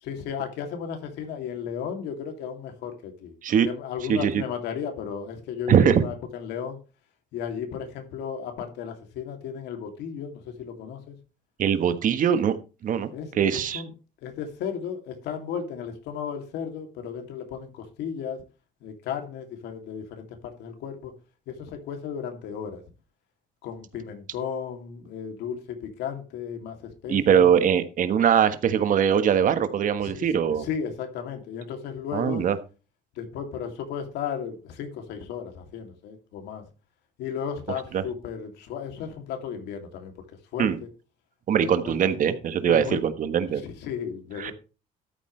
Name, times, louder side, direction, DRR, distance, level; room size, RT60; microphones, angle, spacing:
voice 1, 0.0-3.3 3.6-6.8 7.3-11.1 13.1-13.9 14.2-18.4 18.8-21.1 21.5-22.8 23.6-27.5 30.0-32.5 33.2-36.6 37.2-40.1 40.5-40.7 41.5-42.2 42.6-43.0 43.4-44.5, left 7 dB, 85° left, 5 dB, 2.8 m, -34 dB
voice 2, 4.1-4.4 5.7-6.0 11.6-12.6 12.8-13.1 13.3-13.8 27.1-30.7 32.1-32.6 37.9-38.0 40.6-40.8 41.5-43.6 44.4-44.5, right 8 dB, 50° right, 10 dB, 1.4 m, -22 dB
13.0 x 8.8 x 3.3 m, 0.32 s
cardioid pair, 110°, 17 cm